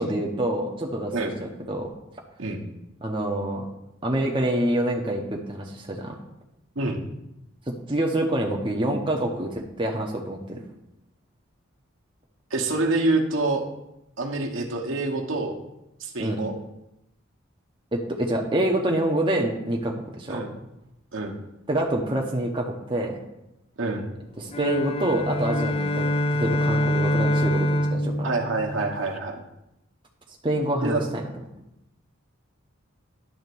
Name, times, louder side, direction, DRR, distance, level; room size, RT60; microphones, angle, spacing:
voice 1, 0.0-1.9 3.0-3.7 4.0-6.2 7.7-10.6 16.2-16.4 17.9-20.5 21.7-23.2 24.4-28.3 30.4-31.2, right 1 dB, 25° right, 0 dB, 0.8 m, -26 dB
voice 2, 12.5-13.6 14.2-15.6 16.0-16.5 20.3-20.5 21.1-21.4 23.8-24.1 28.2-29.4 30.8-31.0, right 2 dB, 65° right, 1 dB, 1.2 m, -26 dB
sound 1, 24.5-29.2, left 1 dB, 25° left, 0.4 m, -25 dB
10.5 x 3.6 x 6.9 m, 0.88 s
head